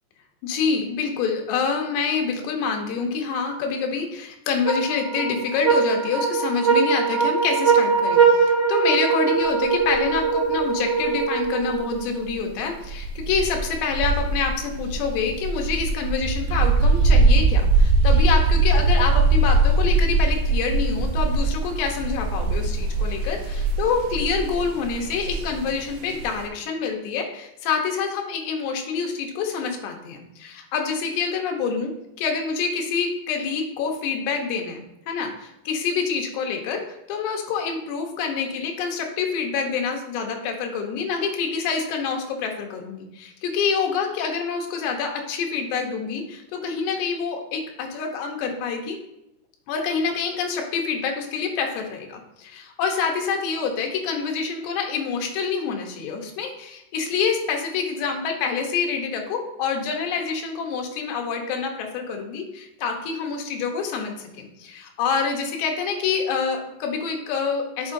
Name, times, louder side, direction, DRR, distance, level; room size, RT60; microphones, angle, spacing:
voice 1, 0.4-31.9 32.2-49.0 49.7-67.9, left 5 dB, 80° left, 3 dB, 3.1 m, -27 dB
sound 1, 4.7-12.2, right 5 dB, 30° right, 2.8 m, -21 dB
sound 2, 9.9-10.2 11.7-11.8 12.2-12.3 12.8-26.5, right 2 dB, 80° right, 2.8 m, -21 dB
9.2 x 6.4 x 2.7 m, 0.88 s
omnidirectional pair, 5.0 m